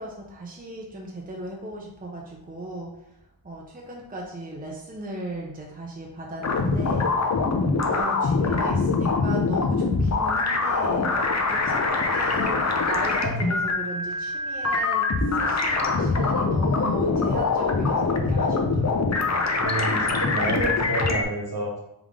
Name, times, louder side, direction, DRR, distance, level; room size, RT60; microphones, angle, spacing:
voice 1, 0.0-3.0 3.4-7.1 7.9-12.6 12.9-15.1 15.3-19.4, right 1 dB, 20° right, -2 dB, 0.7 m, -37 dB
sound 1, 6.4-21.2, left 3 dB, 35° left, 0.6 m, -24 dB
voice 2, 19.6-21.8, right 1 dB, 50° right, -2 dB, 1.3 m, -28 dB
3.6 x 3.5 x 3.6 m, 0.84 s
wide cardioid pair, 60°, 46 cm